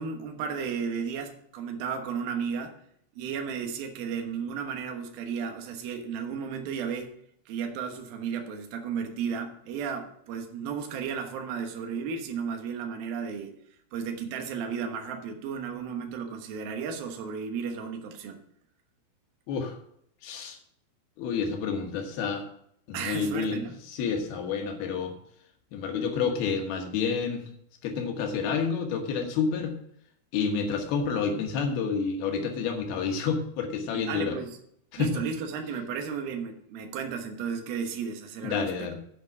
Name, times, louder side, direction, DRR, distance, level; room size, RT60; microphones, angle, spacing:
voice 1, 0.0-2.7 3.2-7.1 7.5-13.5 13.9-18.4 22.9-23.8 33.9-34.6 35.0-38.9, right 6 dB, 65° right, 4 dB, 2.7 m, -34 dB
voice 2, 19.5-19.8 20.2-20.6 21.2-22.4 22.9-25.1 25.7-27.4 27.8-29.7 30.3-34.4 34.9-35.1 38.4-39.0, left 5 dB, 70° left, 4 dB, 2.8 m, -29 dB
9.5 x 6.1 x 6.0 m, 0.70 s
omnidirectional pair, 5.2 m